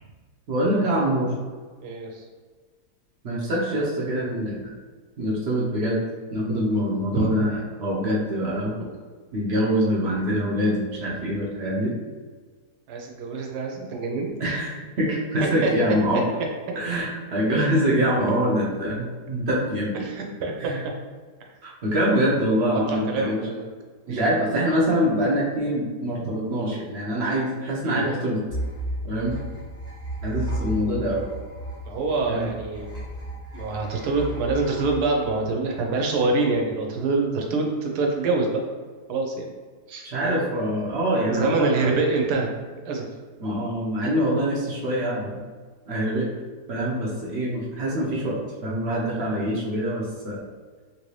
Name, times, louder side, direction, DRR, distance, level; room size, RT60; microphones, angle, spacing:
voice 1, 0.5-1.3 3.2-4.7 5.2-6.0 6.3-8.9 9.3-11.9 14.4-16.2 16.8-20.1 20.6-20.8 21.6-23.4 24.1-28.4 29.0-29.3 30.2-31.2 32.3-32.5 40.0-41.9 43.4-45.4 45.9-46.3 46.7-48.3 48.6-50.4, equal, 60° right, -4 dB, 0.7 m, -24 dB
voice 2, 1.8-2.2 7.1-7.3 12.9-14.5 15.6-15.7 19.9-20.7 22.7-23.7 24.1-24.3 27.8-28.0 31.8-32.9 33.5-38.6 39.1-39.5 39.9-40.1 41.3-42.5 42.8-43.0, right 3 dB, 75° right, 1 dB, 1.1 m, -25 dB
sound 1, 28.5-36.0, right 1 dB, 5° right, 0.5 m, -34 dB
3.2 x 2.6 x 3.1 m, 1.5 s
omnidirectional pair, 1.8 m